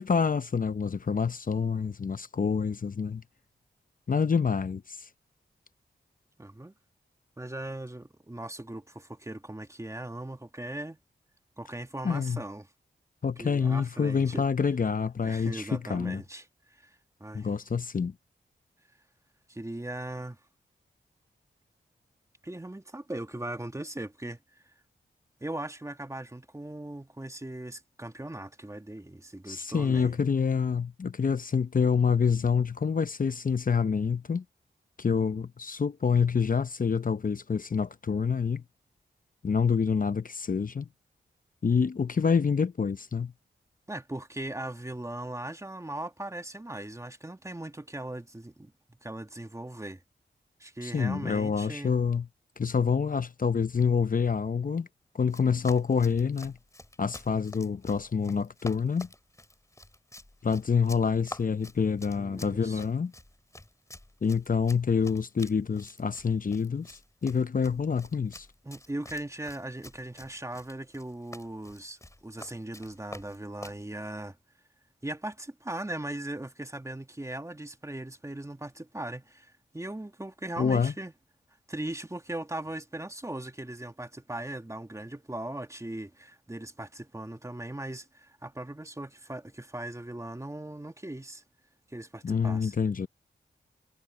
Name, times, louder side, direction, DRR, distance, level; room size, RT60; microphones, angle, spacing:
voice 1, 0.0-3.2 4.1-5.1 12.0-12.4 13.2-16.2 17.3-18.1 29.5-34.4 35.0-38.6 39.4-40.9 41.6-43.3 50.8-52.3 52.6-54.9 55.1-56.6 57.0-59.1 60.4-63.1 64.2-68.5 80.6-80.9 92.2-93.1, left 6 dB, 50° left, 0.7 m, -27 dB
voice 2, 6.4-6.7 7.4-11.0 11.6-12.7 13.4-14.4 15.2-17.5 19.5-20.4 22.4-24.6 25.4-30.2 43.9-50.0 50.6-52.0 62.2-62.9 68.6-74.4 75.0-81.1 81.7-91.4 91.9-92.7, right 1 dB, 15° right, 1.7 m, -39 dB
Run, 55.2-73.8, left 1 dB, 15° left, 2.8 m, -49 dB
cardioid pair, 45°, 18 cm